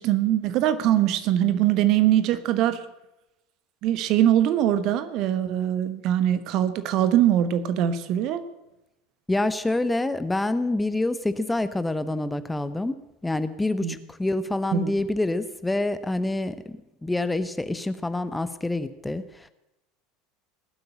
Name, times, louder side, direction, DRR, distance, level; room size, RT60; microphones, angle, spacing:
voice 1, 0.0-2.8 3.8-8.4 13.8-13.9 14.7-14.9, right 11 dB, 45° right, 12 dB, 1.2 m, -22 dB
voice 2, 9.3-19.5, left 2 dB, 10° left, 12 dB, 0.8 m, -27 dB
19.0 x 8.0 x 8.7 m, 0.93 s
figure-of-eight pair, 75°, 0 cm